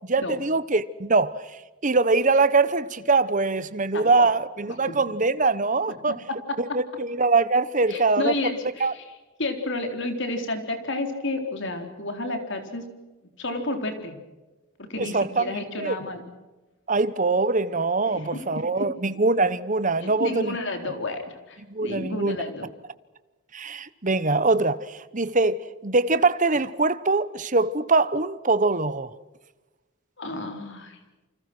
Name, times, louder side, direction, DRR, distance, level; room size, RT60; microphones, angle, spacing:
voice 1, 0.1-1.3 1.8-6.1 6.6-8.3 8.8-8.9 15.0-15.9 16.9-20.6 21.7-22.4 23.5-29.1, right 3 dB, 35° right, 1.0 m, -23 dB
voice 2, 3.9-4.3 4.7-5.0 6.3-6.8 7.9-9.0 9.4-12.9 13.4-14.1 14.8-16.2 18.1-18.9 20.0-22.6 30.2-31.0, left 2 dB, 55° left, 4.0 m, -31 dB
28.5 x 25.5 x 6.2 m
head